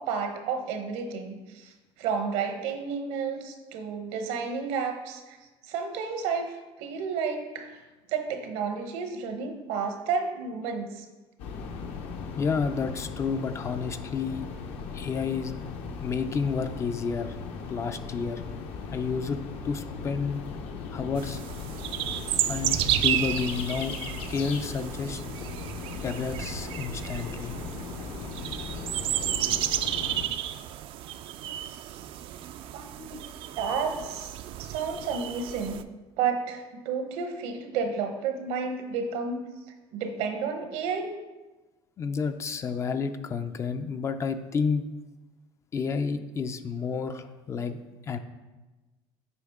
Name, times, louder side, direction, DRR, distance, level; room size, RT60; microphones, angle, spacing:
voice 1, 0.0-1.7 2.0-5.4 5.7-6.5 6.8-7.7 8.1-11.0 32.7-33.2 33.6-34.3 34.6-35.8 36.2-39.4 39.9-41.1, right 5 dB, 80° right, 6 dB, 1.1 m, -31 dB
sound 1, 11.4-30.3, left 5 dB, 65° left, 0.9 m, -38 dB
voice 2, 12.4-14.4 14.9-15.6 16.0-17.4 17.7-18.4 18.9-20.4 20.9-21.4 22.5-23.9 24.3-25.2 26.0-27.5 42.0-44.8 45.7-47.8 48.1-48.2, left 5 dB, 25° left, 9 dB, 0.4 m, -30 dB
sound 2, 21.2-35.8, right 12 dB, 50° right, 0.3 m, -32 dB
8.3 x 5.2 x 3.5 m, 1.2 s
cardioid pair, 150°, 11 cm